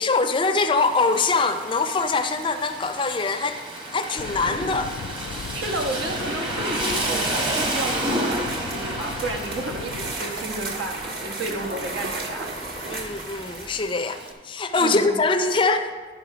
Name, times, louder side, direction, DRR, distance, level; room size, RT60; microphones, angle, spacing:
voice 1, 0.0-3.6 3.9-4.9 11.5-11.6 12.9-15.9, left 3 dB, 25° left, 8 dB, 0.5 m, -23 dB
Rain, 0.8-14.3, right 1 dB, 30° right, 1.2 m, -31 dB
sound 1, 4.2-10.1, left 6 dB, 90° left, 0.3 m, -38 dB
voice 2, 5.5-12.5 14.8-15.2, right 2 dB, 75° right, 1 dB, 1.3 m, -32 dB
sound 2, 8.3-13.9, right 2 dB, 55° right, 1.4 m, -34 dB
12.0 x 5.4 x 5.0 m, 1.5 s
head